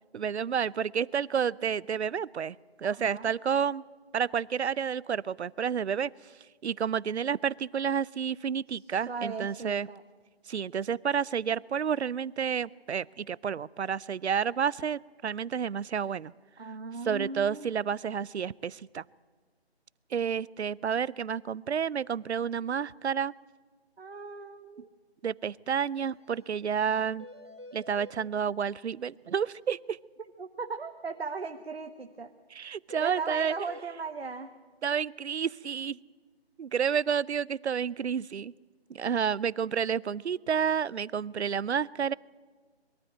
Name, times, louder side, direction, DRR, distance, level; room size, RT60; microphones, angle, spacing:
voice 1, 0.1-3.8 4.1-6.1 6.6-9.9 10.5-16.3 17.0-19.0 20.1-23.3 25.2-27.3 27.7-30.0 32.5-33.5 34.8-36.0 36.6-38.5 38.9-42.1, right 7 dB, 80° right, 24 dB, 0.5 m, -30 dB
voice 2, 3.0-3.3 9.1-10.0 16.6-17.7 24.0-24.9 30.4-32.3 33.0-34.5, right 4 dB, 65° right, 6 dB, 1.2 m, -37 dB
sound 1, 26.0-26.1 26.3-26.4 26.7-26.8 27.2-28.2 32.9-33.9, left 1 dB, 25° right, 0.6 m, -47 dB
22.5 x 13.0 x 9.0 m, 1.4 s
figure-of-eight pair, 175°, 32 cm